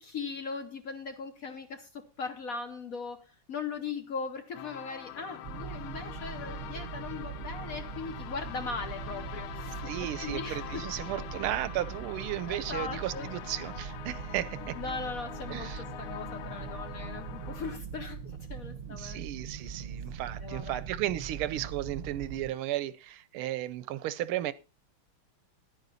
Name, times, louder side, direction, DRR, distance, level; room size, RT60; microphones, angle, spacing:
voice 1, 0.0-9.9 10.2-10.8 12.5-13.3 14.8-15.7 16.0-19.2 20.4-20.8, left 5 dB, 55° left, 1.0 m, -39 dB
sound 1, 4.5-17.8, left 11 dB, 80° left, 1.6 m, -44 dB
sound 2, 5.4-22.5, right 7 dB, 50° right, 1.0 m, -41 dB
voice 2, 9.6-14.8 15.5-15.8 18.9-24.5, right 13 dB, 85° right, 1.5 m, -34 dB
11.0 x 9.1 x 4.0 m
omnidirectional pair, 2.3 m